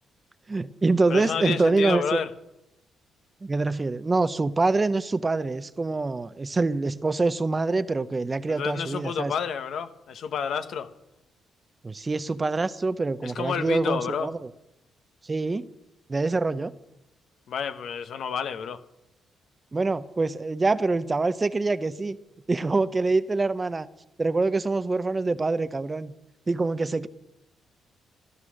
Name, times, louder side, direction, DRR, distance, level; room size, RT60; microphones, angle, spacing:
voice 1, 0.5-2.2 3.4-9.3 11.8-14.5 15.2-15.7 16.1-16.7 19.7-22.2 22.5-23.9 24.2-26.1 26.5-27.1, right 3 dB, 25° right, 14 dB, 0.7 m, -25 dB
voice 2, 1.1-2.3 8.5-10.9 13.2-14.3 17.5-18.8, left 7 dB, 65° left, 9 dB, 1.2 m, -30 dB
15.0 x 13.0 x 6.4 m, 0.90 s
cardioid pair, 90°, 0 cm